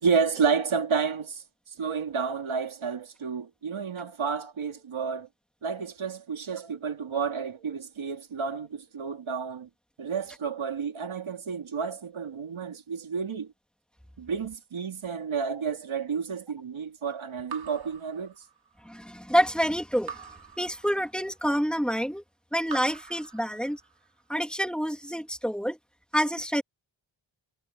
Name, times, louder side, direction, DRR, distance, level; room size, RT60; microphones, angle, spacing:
voice 1, 0.0-1.4 1.8-5.3 5.6-9.7 10.0-13.5 14.2-18.3, right 5 dB, 80° right, 2.7 m, -30 dB
Raindrop / Drip, 17.5-18.9 20.1-21.4 22.6-24.1, right 6 dB, 50° right, 2.4 m, -44 dB
voice 2, 18.8-20.3 20.6-22.2 22.5-23.8 24.3-25.8 26.1-26.6, equal, ahead, 2.7 m, -27 dB
wide cardioid pair, 125°, 47 cm